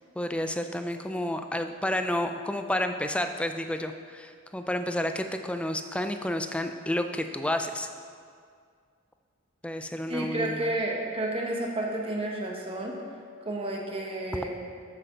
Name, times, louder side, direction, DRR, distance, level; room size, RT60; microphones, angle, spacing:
voice 1, 0.2-7.9 9.6-10.8, left 1 dB, 5° left, 7 dB, 0.4 m, -30 dB
voice 2, 10.1-13.0 13.4-14.5, right 1 dB, 25° right, -1 dB, 1.3 m, -31 dB
8.7 x 6.3 x 6.7 m, 2.2 s
head